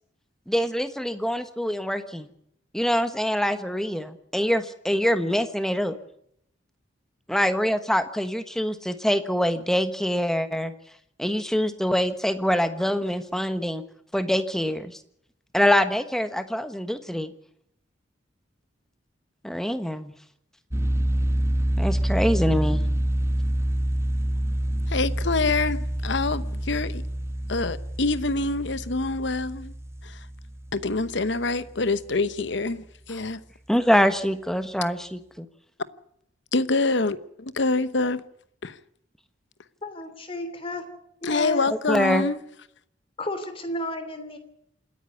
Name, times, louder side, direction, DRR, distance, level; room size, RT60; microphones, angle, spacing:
voice 1, 0.5-2.3 2.7-6.0 7.3-10.7 11.2-13.8 14.1-15.0 15.5-17.3 19.4-20.1 21.8-22.8 33.7-35.5 41.9-42.3, equal, 5° left, 1.3 m, -24 dB
sound 1, 20.7-31.6, right 1 dB, 15° right, 1.2 m, -27 dB
voice 2, 24.9-27.0 27.5-29.7 30.0-30.2 30.7-33.4 36.5-38.2 38.6-38.8 41.2-42.4, left 3 dB, 65° left, 1.0 m, -26 dB
voice 3, 39.8-40.8 41.2-41.7 43.2-44.4, left 1 dB, 30° left, 2.9 m, -32 dB
27.5 x 10.0 x 9.6 m
head